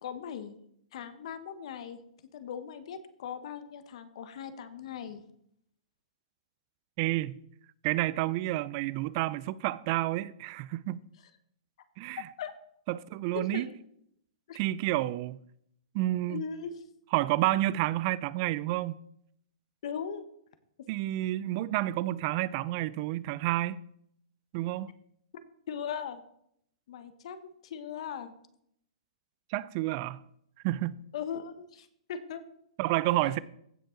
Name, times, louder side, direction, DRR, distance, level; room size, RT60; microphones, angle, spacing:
voice 1, 0.0-0.6 0.9-2.0 2.3-5.2 12.4-12.5 13.3-13.7 14.5-14.6 16.3-16.7 19.8-20.2 25.7-26.2 26.9-27.4 27.6-28.3 31.1-32.4, left 7 dB, 55° left, 1.0 m, -39 dB
voice 2, 7.0-7.4 7.8-11.0 12.0-12.2 12.9-13.7 14.6-15.4 15.9-16.4 17.1-19.0 20.9-23.8 24.5-24.9 29.5-30.2 30.6-31.0 32.8-33.4, right 16 dB, 35° right, 0.3 m, -30 dB
15.5 x 5.3 x 3.8 m
hypercardioid pair, 155°, 4 cm